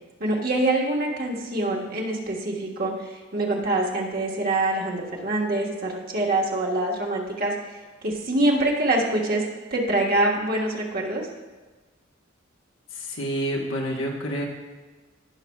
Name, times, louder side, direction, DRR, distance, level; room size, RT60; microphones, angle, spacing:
voice 1, 0.2-7.5 8.0-9.4 9.7-11.2, right 2 dB, 50° right, -2 dB, 1.5 m, -25 dB
voice 2, 12.9-14.4, equal, 70° left, -1 dB, 1.4 m, -28 dB
17.0 x 5.9 x 2.4 m, 1.3 s
head